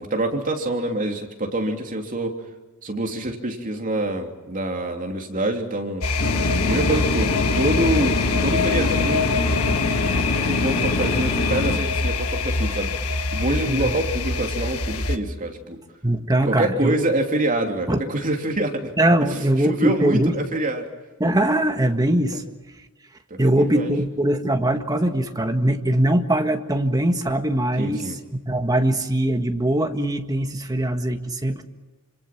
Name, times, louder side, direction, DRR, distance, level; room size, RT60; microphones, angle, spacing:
voice 1, 0.0-2.3 2.8-6.0 6.6-9.3 10.5-13.1 13.3-15.8 16.4-18.9 19.6-20.9 23.3-23.9 27.8-28.2, right 1 dB, 40° right, 2 dB, 3.1 m, -26 dB
sound 1, 6.0-15.2, left 3 dB, 80° left, 1.5 m, -24 dB
sound 2, 6.2-11.8, left 2 dB, 45° left, 2.7 m, -25 dB
voice 2, 13.7-14.0 16.0-17.0 17.9-18.0 19.0-20.3 21.2-22.4 23.4-28.1 28.4-31.6, right 1 dB, 15° right, 5 dB, 1.7 m, -21 dB
27.0 x 26.0 x 6.0 m, 1.2 s
head